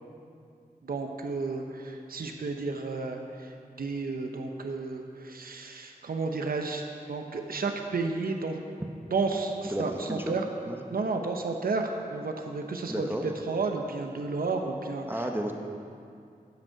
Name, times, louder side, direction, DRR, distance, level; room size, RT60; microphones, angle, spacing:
voice 1, 0.8-8.6 9.1-10.4 10.9-15.3, right 3 dB, 85° right, 4 dB, 0.7 m, -32 dB
voice 2, 9.7-10.3 10.7-10.8 12.9-13.2 15.1-15.5, right 1 dB, 15° right, 3 dB, 0.8 m, -32 dB
9.2 x 5.2 x 7.7 m, 2.4 s
wide cardioid pair, 60°, 15 cm